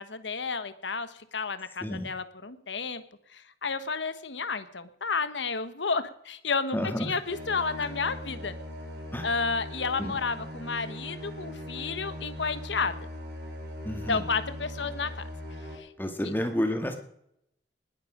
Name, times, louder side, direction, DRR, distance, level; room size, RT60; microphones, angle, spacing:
voice 1, 0.0-3.0 3.3-8.5 9.2-13.0 14.1-15.3 15.7-15.9, left 4 dB, 85° left, 12 dB, 1.3 m, -31 dB
voice 2, 6.7-7.2 9.1-9.3 10.0-10.2 13.8-14.2 16.0-17.0, equal, 10° left, 5 dB, 2.0 m, -30 dB
sound 1, 7.2-15.7, left 1 dB, 70° right, 4.8 m, -40 dB
20.0 x 10.5 x 5.1 m, 0.73 s
head